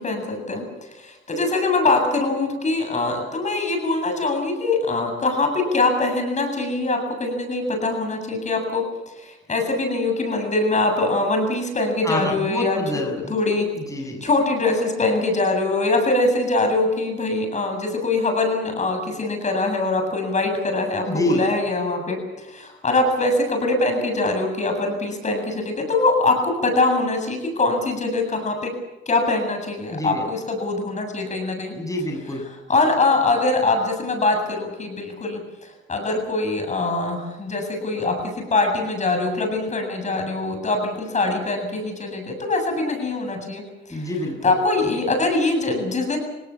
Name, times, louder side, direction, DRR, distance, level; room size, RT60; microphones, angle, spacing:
voice 1, 0.0-8.8 9.2-12.8 13.3-13.6 14.2-28.7 29.1-31.7 32.7-43.6 43.9-44.1 44.4-46.2, left 2 dB, 35° left, 4 dB, 7.9 m, -23 dB
voice 2, 12.0-13.3 13.8-14.2 21.1-21.4 29.9-30.3 31.7-32.5 43.9-44.5, left 1 dB, 15° left, 2 dB, 7.3 m, -27 dB
29.5 x 18.5 x 7.4 m, 1.0 s
cardioid pair, 90°, 20 cm